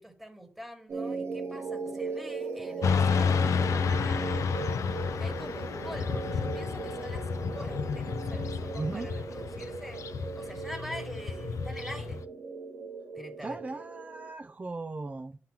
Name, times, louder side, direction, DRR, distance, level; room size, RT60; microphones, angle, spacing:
voice 1, 0.0-4.5 5.2-10.0 10.4-12.2 13.1-13.6, equal, ahead, 1.6 m, -45 dB
sound 1, 0.9-14.3, right 4 dB, 60° right, 1.0 m, -38 dB
Motorcycle / Traffic noise roadway noise, 2.8-12.2, left 6 dB, 75° left, 0.5 m, -31 dB
voice 2, 8.7-9.1 13.4-15.4, right 3 dB, 30° right, 0.4 m, -37 dB
11.5 x 3.9 x 2.8 m
cardioid pair, 75°, 5 cm